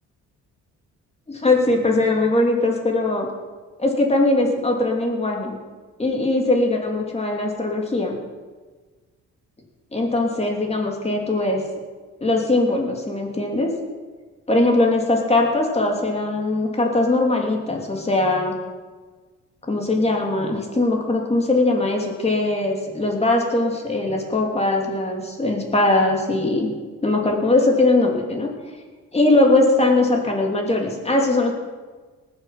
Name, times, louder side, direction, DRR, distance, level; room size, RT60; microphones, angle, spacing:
voice 1, 1.3-3.3 3.8-5.6 6.0-8.2 9.9-11.6 12.2-13.7 14.5-18.5 19.7-26.7 27.0-28.5 29.1-31.5, left 2 dB, 20° left, 0 dB, 3.0 m, -20 dB
19.5 x 7.4 x 5.9 m, 1.4 s
cardioid pair, 90°, 30 cm